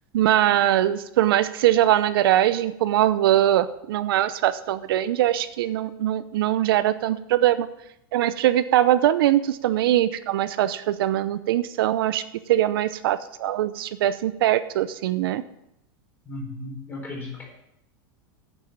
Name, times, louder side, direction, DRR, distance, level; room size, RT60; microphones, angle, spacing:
voice 1, 0.1-7.7 8.1-12.2 12.5-15.4, right 12 dB, 80° right, 13 dB, 0.7 m, -22 dB
voice 2, 16.2-17.4, left 2 dB, 15° left, -2 dB, 4.3 m, -35 dB
9.1 x 7.1 x 8.7 m, 0.81 s
supercardioid pair, 155°, 12 cm